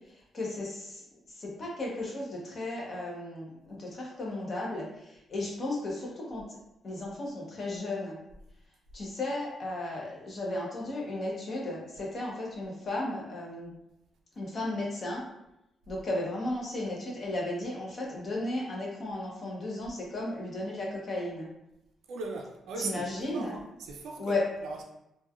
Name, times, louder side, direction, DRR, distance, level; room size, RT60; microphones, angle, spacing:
voice 1, 0.3-1.0 1.4-6.6 6.8-8.2 8.9-13.7 14.4-15.2 15.9-21.5 22.8-23.5 24.2-24.4, left 2 dB, 35° left, -2 dB, 0.6 m, -35 dB
voice 2, 22.1-24.8, right 3 dB, 85° right, 2 dB, 0.4 m, -39 dB
3.0 x 2.2 x 2.3 m, 0.86 s
cardioid pair, 170°, 0 cm